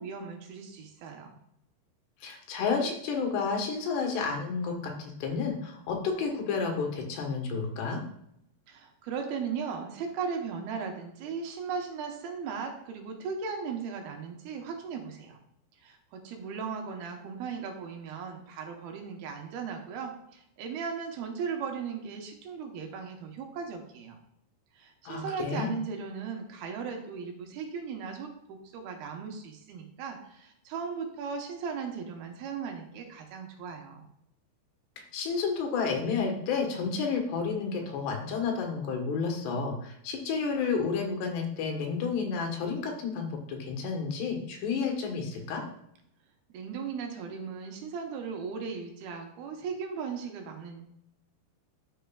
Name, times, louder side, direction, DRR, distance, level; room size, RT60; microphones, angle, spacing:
voice 1, 0.0-1.4 8.7-15.4 15.8-24.2 24.7-34.1 46.5-50.8, right 6 dB, 75° right, 3 dB, 2.9 m, -37 dB
voice 2, 2.2-8.0 25.1-25.7 35.1-45.6, left 5 dB, 85° left, 2 dB, 3.6 m, -31 dB
13.5 x 6.4 x 2.4 m, 0.76 s
omnidirectional pair, 4.7 m